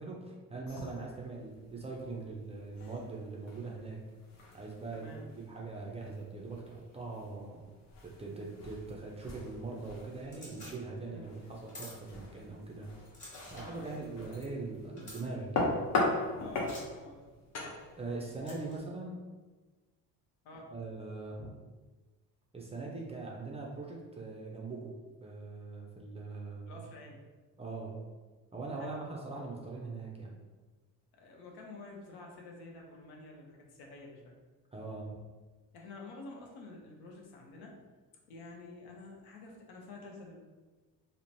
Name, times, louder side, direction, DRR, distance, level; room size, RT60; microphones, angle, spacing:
voice 1, 0.0-4.0 4.5-5.0 5.3-7.6 8.0-12.9 13.5-15.8 18.0-19.2 20.7-21.5 22.5-24.9 25.2-26.8 27.6-28.0 28.5-30.4 34.7-35.1, right 3 dB, 15° right, -3 dB, 0.4 m, -41 dB
sound 1, 0.7-18.8, left 2 dB, 45° left, 0.6 m, -40 dB
voice 2, 4.9-5.3 11.1-11.3 13.6-13.9 16.4-17.3 20.4-20.7 26.6-27.3 28.8-29.1 31.1-34.3 35.7-37.8 38.3-40.4, left 2 dB, 80° left, 0 dB, 0.7 m, -49 dB
sound 2, 10.3-10.7 11.7-11.9 13.1-13.6 15.0-15.2 16.6-16.8 18.4-18.8, left 1 dB, 20° left, 1.3 m, -48 dB
3.0 x 2.0 x 2.6 m, 1.3 s
cardioid pair, 105°, 38 cm